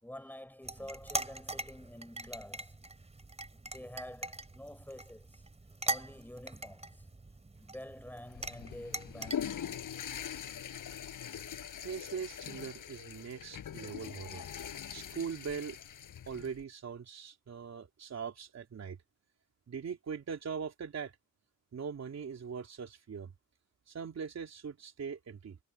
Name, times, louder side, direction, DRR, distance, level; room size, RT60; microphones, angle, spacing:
voice 1, 0.0-2.8 3.5-5.4 5.8-7.0 7.6-9.8, left 1 dB, 5° left, 5.2 m, -48 dB
Carrying drinks, 0.6-9.4, right 2 dB, 20° right, 4.2 m, -41 dB
Water / Toilet flush, 8.3-16.6, left 9 dB, 75° left, 5.7 m, -42 dB
voice 2, 11.8-14.4 14.9-15.8 16.3-19.0 19.7-21.1 21.7-23.3 23.9-25.6, right 6 dB, 55° right, 3.4 m, -41 dB
wide cardioid pair, 150°, 32 cm